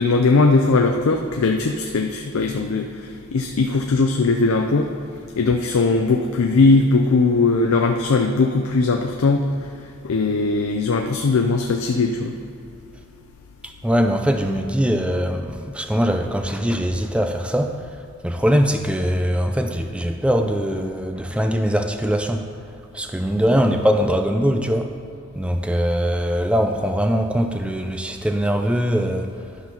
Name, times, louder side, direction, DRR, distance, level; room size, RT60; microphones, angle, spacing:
voice 1, 0.0-4.9 5.4-9.5 10.0-12.4, left 3 dB, 90° left, 3 dB, 0.5 m, -19 dB
voice 2, 13.6-22.4 22.9-24.9 25.4-29.3, equal, 5° right, 6 dB, 0.3 m, -22 dB
12.0 x 4.0 x 5.8 m, 2.6 s
head